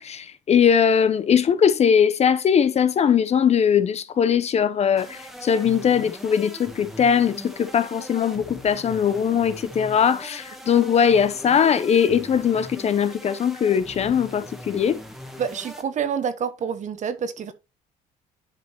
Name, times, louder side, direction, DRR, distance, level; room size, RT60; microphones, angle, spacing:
voice 1, 0.0-15.0, left 7 dB, 40° left, 0.7 m, -20 dB
sound 1, 5.0-15.8, equal, ahead, 1.4 m, -40 dB
voice 2, 15.4-17.5, right 7 dB, 45° right, 1.1 m, -27 dB
10.5 x 5.1 x 3.0 m
cardioid pair, 110°, 17 cm